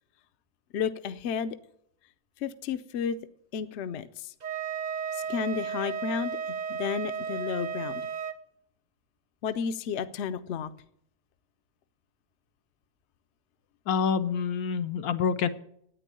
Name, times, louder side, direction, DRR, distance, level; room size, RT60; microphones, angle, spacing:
voice 1, 0.7-1.6 2.4-3.2 3.5-4.3 5.1-6.4 6.7-8.0 9.4-10.7, left 7 dB, 60° left, 10 dB, 0.8 m, -32 dB
Wind instrument woodwind instrument, 4.4-8.4, right 7 dB, 45° right, 0.6 m, -34 dB
voice 2, 13.9-15.5, left 6 dB, 80° left, 9 dB, 1.2 m, -27 dB
9.9 x 9.2 x 6.7 m, 0.70 s
omnidirectional pair, 1.6 m